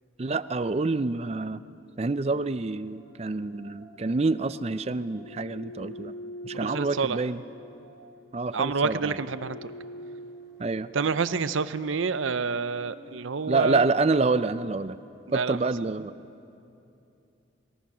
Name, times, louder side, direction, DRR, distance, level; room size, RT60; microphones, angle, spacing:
voice 1, 0.2-1.6 2.0-6.1 6.4-7.4 8.3-9.2 10.6-10.9 13.5-15.0 15.3-16.1, right 3 dB, 30° right, 14 dB, 0.4 m, -27 dB
sound 1, 2.6-14.4, equal, 90° left, 3.5 m, -46 dB
voice 2, 6.5-7.2 8.5-9.7 10.9-13.8 15.3-15.6, right 5 dB, 80° right, 14 dB, 0.6 m, -28 dB
22.0 x 21.0 x 6.2 m, 2.7 s
head